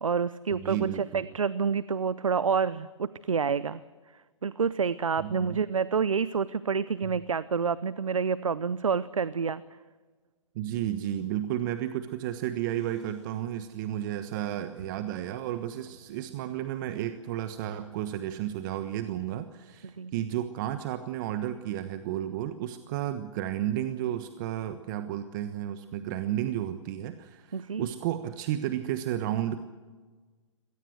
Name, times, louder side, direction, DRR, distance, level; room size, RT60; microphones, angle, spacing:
voice 1, 0.0-3.8 4.4-9.6 20.0-20.1 27.5-27.9, right 6 dB, 85° right, 17 dB, 0.8 m, -28 dB
voice 2, 0.5-1.3 5.2-5.6 10.5-29.6, right 12 dB, 40° right, 10 dB, 1.3 m, -32 dB
sound 1, 12.1-19.5, right 2 dB, 65° right, 7.3 m, -59 dB
26.0 x 18.0 x 7.9 m, 1.4 s
hypercardioid pair, 135°, 16 cm